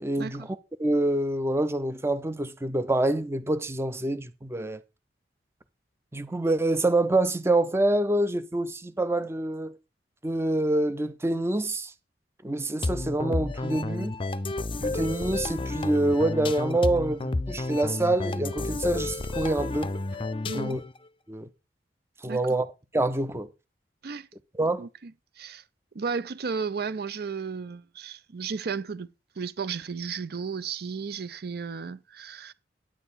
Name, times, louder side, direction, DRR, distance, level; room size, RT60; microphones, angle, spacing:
voice 1, 0.0-4.8 6.1-9.8 10.2-11.9 12.4-14.1 14.8-19.9 20.5-20.8 21.3-21.5 22.2-22.7 22.9-23.5 24.6-24.9, right 2 dB, 15° right, 0.6 m, -26 dB
sound 1, 12.8-21.0, left 2 dB, 30° left, 0.6 m, -31 dB
voice 2, 20.4-20.8 22.3-22.4 24.0-24.3 24.8-25.6 25.9-29.1 29.4-32.5, right 5 dB, 60° right, 0.5 m, -34 dB
9.9 x 9.1 x 4.1 m
head